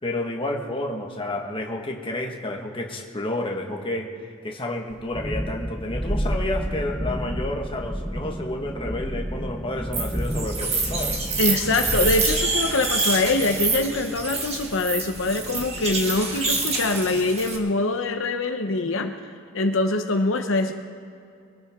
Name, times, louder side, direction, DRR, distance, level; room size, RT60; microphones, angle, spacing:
voice 1, 0.0-4.1 4.4-11.2, left 1 dB, 25° left, 1 dB, 1.5 m, -30 dB
Thunderstorm, 4.9-16.5, equal, 5° right, 0.6 m, -31 dB
sound 1, 9.9-17.6, right 3 dB, 30° right, 1.8 m, -27 dB
voice 2, 11.4-19.1 19.5-20.7, left 2 dB, 65° left, 5 dB, 0.9 m, -24 dB
23.5 x 14.0 x 3.7 m, 2.5 s
head